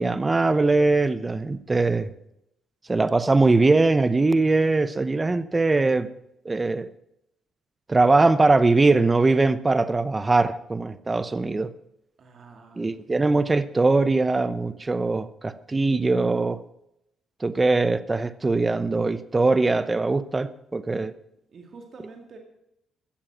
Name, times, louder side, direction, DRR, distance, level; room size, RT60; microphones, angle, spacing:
voice 1, 0.0-2.1 2.9-6.1 6.4-6.9 7.9-11.7 12.8-16.6 17.4-21.1, right 3 dB, 20° right, 14 dB, 0.8 m, -21 dB
voice 2, 12.2-13.7 21.5-22.4, right 4 dB, 50° right, 2 dB, 2.1 m, -48 dB
14.5 x 7.5 x 7.5 m, 0.80 s
cardioid pair, 90°, 0 cm